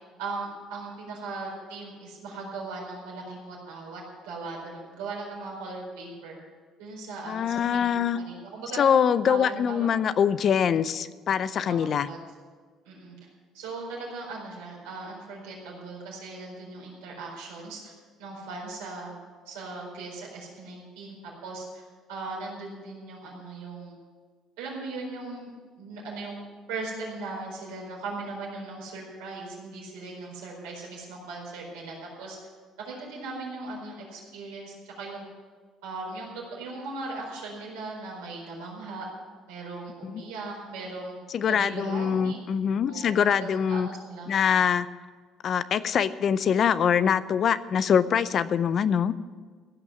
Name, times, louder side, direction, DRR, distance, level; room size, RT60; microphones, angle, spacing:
voice 1, 0.2-6.4 6.8-8.8 9.3-9.9 11.5-12.2 12.8-13.1 13.5-17.9 18.2-19.2 19.5-21.1 21.4-24.0 24.6-26.4 26.7-32.4 32.8-35.2 35.8-39.1 39.5-41.2 41.5-42.4 42.9-43.1 43.4-44.3, right 3 dB, 85° right, -2 dB, 4.5 m, -38 dB
voice 2, 7.3-8.2 8.8-12.1 40.0-40.1 41.3-43.9 44.3-44.9 45.4-49.1, left 8 dB, 55° left, 15 dB, 0.6 m, -24 dB
16.0 x 6.2 x 9.3 m, 1.5 s
supercardioid pair, 70°, 0 cm